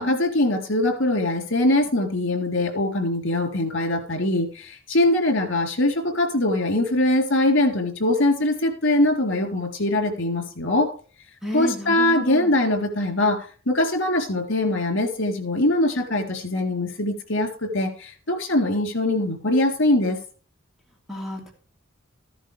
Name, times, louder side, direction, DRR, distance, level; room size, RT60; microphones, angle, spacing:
voice 1, 0.0-10.9 11.5-20.2, left 1 dB, 65° left, 3 dB, 3.6 m, -22 dB
voice 2, 11.4-12.6 21.1-21.5, left 1 dB, ahead, -2 dB, 2.7 m, -31 dB
15.0 x 11.0 x 3.4 m, 0.40 s
head